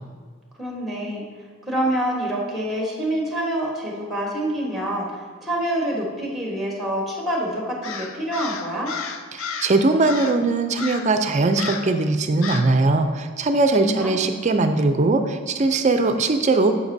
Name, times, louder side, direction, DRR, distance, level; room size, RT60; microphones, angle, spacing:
voice 1, 0.6-1.2 1.7-8.9 13.8-14.1, right 1 dB, ahead, -3 dB, 1.2 m, -26 dB
Crow, 7.8-9.8 10.0-10.4 10.8-11.2 11.6-11.9 12.4-12.7, left 6 dB, 65° left, 0.5 m, -32 dB
voice 2, 9.3-16.8, right 3 dB, 35° right, 7 dB, 0.4 m, -20 dB
12.0 x 5.2 x 2.7 m, 1.6 s
head